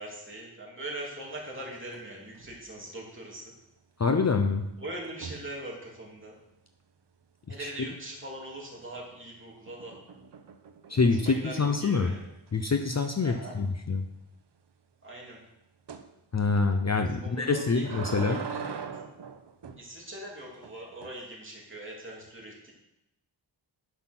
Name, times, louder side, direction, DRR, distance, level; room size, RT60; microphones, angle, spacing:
voice 1, 0.0-3.5 4.8-6.3 7.5-9.9 10.9-12.3 13.2-13.6 15.0-15.4 17.1-17.8 18.1-18.9 19.8-22.7, right 1 dB, 25° right, -3 dB, 3.0 m, -41 dB
sound 1, 1.5-2.1 2.4-2.7 5.0-5.6 8.7-9.2 9.7-12.0 12.5-12.6 12.9-13.1 13.4-13.5 15.9-16.1 17.4-19.8 20.6-21.1, right 6 dB, 60° right, 0.9 m, -41 dB
voice 2, 4.0-4.7 7.5-7.7 10.9-12.1 12.5-14.0 16.3-18.4, left 4 dB, 35° left, 6 dB, 0.7 m, -26 dB
11.5 x 5.9 x 6.1 m, 0.87 s
wide cardioid pair, 125°, 47 cm